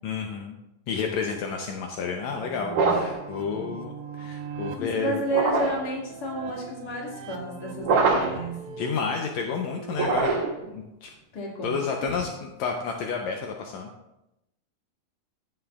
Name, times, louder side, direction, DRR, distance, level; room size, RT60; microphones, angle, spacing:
voice 1, 0.0-0.6 0.9-5.2 8.7-10.3 10.7-11.1 11.6-13.9, left 5 dB, 80° left, 2 dB, 1.6 m, -30 dB
sound 1, 1.4-10.2, right 6 dB, 75° right, 2.2 m, -41 dB
sound 2, 2.7-3.2 5.3-5.9 7.8-8.5 9.9-10.7, right 4 dB, 55° right, 1.8 m, -24 dB
voice 2, 4.8-8.6 11.3-11.8 12.0-12.2, right 1 dB, 35° left, -3 dB, 2.1 m, -31 dB
15.5 x 7.4 x 2.4 m, 0.89 s
omnidirectional pair, 4.0 m